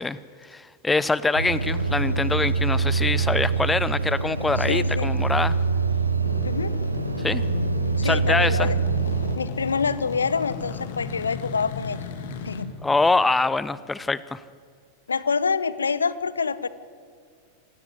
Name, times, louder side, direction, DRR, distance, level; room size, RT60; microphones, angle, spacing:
voice 1, 0.0-5.6 7.2-7.4 8.0-8.7 12.8-14.4, left 3 dB, 10° left, 18 dB, 0.7 m, -24 dB
sound 1, 1.4-9.4, right 4 dB, 80° right, 1.5 m, -24 dB
voice 2, 4.6-5.1 6.4-6.7 8.0-8.8 9.3-12.1 12.4-12.7 15.1-16.7, left 5 dB, 75° left, 17 dB, 1.0 m, -26 dB
sound 2, 6.2-12.6, left 5 dB, 55° left, 2.9 m, -35 dB
26.0 x 17.5 x 9.6 m, 2.2 s
figure-of-eight pair, 90°, 0 cm